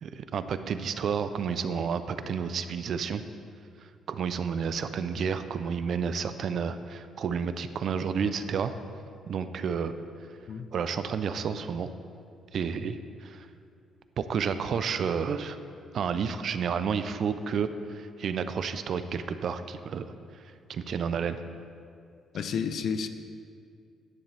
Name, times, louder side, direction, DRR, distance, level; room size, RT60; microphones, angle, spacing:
voice 1, 0.0-3.2 4.1-8.7 9.3-9.9 10.7-11.9 12.5-13.5 14.2-15.6 15.9-20.0 20.7-21.4, right 6 dB, 60° right, 11 dB, 0.4 m, -30 dB
voice 2, 22.3-23.1, left 6 dB, 65° left, 10 dB, 0.5 m, -30 dB
10.5 x 7.2 x 3.3 m, 2.3 s
cardioid pair, 90°, 0 cm